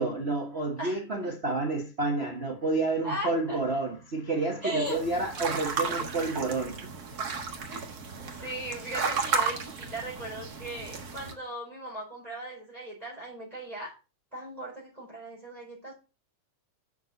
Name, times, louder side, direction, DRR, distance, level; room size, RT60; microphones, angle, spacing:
voice 1, 0.0-6.8, right 3 dB, 75° right, 0.5 m, -29 dB
voice 2, 0.8-1.3 3.0-3.6 4.6-5.2 7.7-7.9 8.4-13.9 14.3-16.0, right 1 dB, 10° right, 4.3 m, -37 dB
sound 1, 4.9-11.3, right 5 dB, 45° right, 1.3 m, -33 dB
9.3 x 6.8 x 4.0 m
omnidirectional pair, 3.6 m